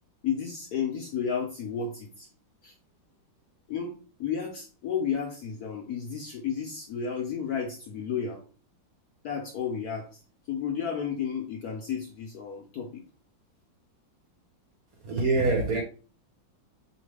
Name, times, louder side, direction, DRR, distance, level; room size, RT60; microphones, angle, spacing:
voice 1, 0.2-2.3 2.6-2.7 3.7-8.4 9.2-10.1 10.5-13.0, left 7 dB, 65° left, 0.9 m, -32 dB
voice 2, 15.0-15.8, right 3 dB, 60° right, 1.0 m, -24 dB
4.1 x 3.1 x 3.2 m
omnidirectional pair, 2.2 m